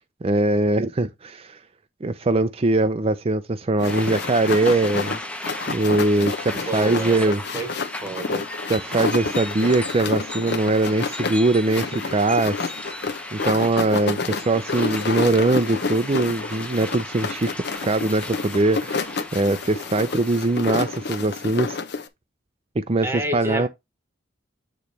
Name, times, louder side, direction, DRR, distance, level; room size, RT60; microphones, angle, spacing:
voice 1, 0.2-1.6 2.0-5.2 5.7-7.4 8.7-12.7 13.3-21.8 22.8-23.7, right 2 dB, 30° right, 0.5 m, -22 dB
sound 1, 3.8-22.1, left 4 dB, 60° left, 0.9 m, -29 dB
sound 2, 3.9-21.9, left 1 dB, 5° left, 0.8 m, -36 dB
voice 2, 6.7-7.7 8.0-8.5 23.0-23.7, right 1 dB, 15° right, 1.2 m, -29 dB
8.8 x 3.2 x 4.0 m
head